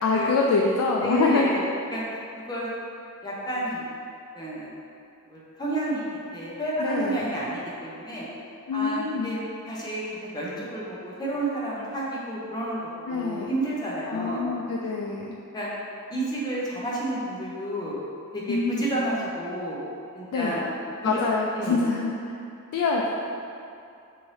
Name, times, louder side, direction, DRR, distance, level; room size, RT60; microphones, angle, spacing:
voice 1, 0.0-1.5 6.8-7.3 8.7-9.4 13.1-13.5 14.1-15.4 18.5-18.9 20.3-20.6 21.0-22.1 22.7-23.1, left 4 dB, 85° left, -1 dB, 0.3 m, -25 dB
voice 2, 1.0-1.6 1.9-2.0 2.5-2.7 3.2-3.9 4.3-4.7 5.3-8.3 8.7-9.4 9.7-14.5 15.5-15.7 16.1-18.0 18.3-19.8 20.1-20.6 21.0-21.2 21.5-21.8, right 1 dB, 20° left, -6 dB, 0.6 m, -30 dB
4.2 x 2.6 x 3.2 m, 2.6 s
head